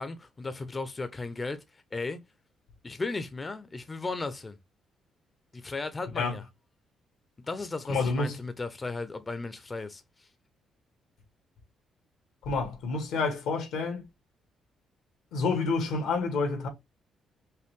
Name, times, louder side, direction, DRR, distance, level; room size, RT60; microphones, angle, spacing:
voice 1, 0.0-1.6 1.9-2.2 2.8-4.6 5.5-6.4 7.5-10.3, left 3 dB, 25° left, 0.7 m, -35 dB
voice 2, 7.9-8.4 12.5-14.1 15.3-16.7, left 4 dB, 85° left, 2.0 m, -28 dB
5.5 x 2.2 x 3.6 m
cardioid pair, 90°, 0 cm